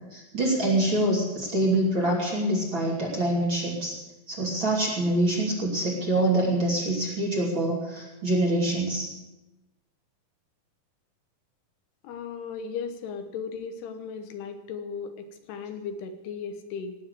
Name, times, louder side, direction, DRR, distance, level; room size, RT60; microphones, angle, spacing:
voice 1, 0.0-4.0 4.3-9.1, right 1 dB, 30° right, -3 dB, 3.1 m, -25 dB
voice 2, 12.0-17.0, left 6 dB, 80° left, 7 dB, 3.2 m, -36 dB
18.0 x 7.3 x 8.3 m, 1.1 s
omnidirectional pair, 4.7 m